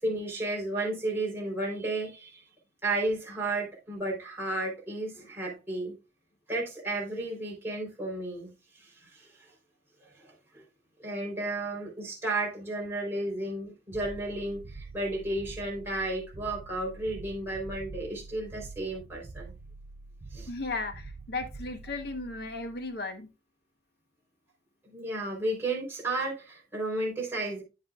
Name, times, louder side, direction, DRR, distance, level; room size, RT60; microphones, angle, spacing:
voice 1, 0.0-2.4 2.8-6.0 6.5-9.5 10.0-10.6 11.0-19.5 20.3-20.5 24.9-27.6, right 2 dB, 15° right, 3.7 m, -33 dB
sound 1, 13.9-23.0, right 3 dB, 35° right, 0.5 m, -46 dB
voice 2, 20.5-23.3, left 3 dB, 55° left, 1.1 m, -35 dB
9.3 x 7.6 x 2.4 m
head